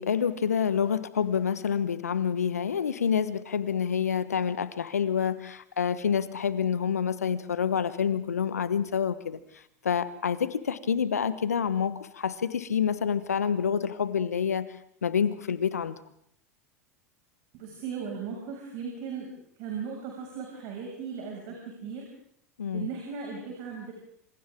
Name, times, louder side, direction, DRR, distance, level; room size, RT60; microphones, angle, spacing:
voice 1, 0.0-9.4 9.8-14.7 15.0-15.9 22.6-22.9, left 7 dB, 80° left, 14 dB, 1.2 m, -27 dB
voice 2, 17.5-19.3 19.6-22.1 22.7-23.9, right 6 dB, 50° right, -1 dB, 6.6 m, -37 dB
27.5 x 26.5 x 3.8 m, 0.69 s
figure-of-eight pair, 85°, 8 cm